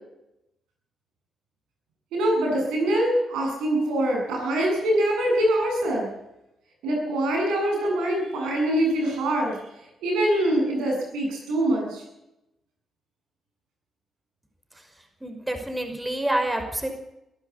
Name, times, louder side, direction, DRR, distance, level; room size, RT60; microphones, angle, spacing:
voice 1, 2.1-6.1 6.8-9.6 10.0-12.0, right 1 dB, 75° right, 0 dB, 7.7 m, -24 dB
voice 2, 15.2-16.9, right 1 dB, 15° right, 5 dB, 5.4 m, -27 dB
21.5 x 14.5 x 8.4 m, 0.88 s
hypercardioid pair, 40°, 0 cm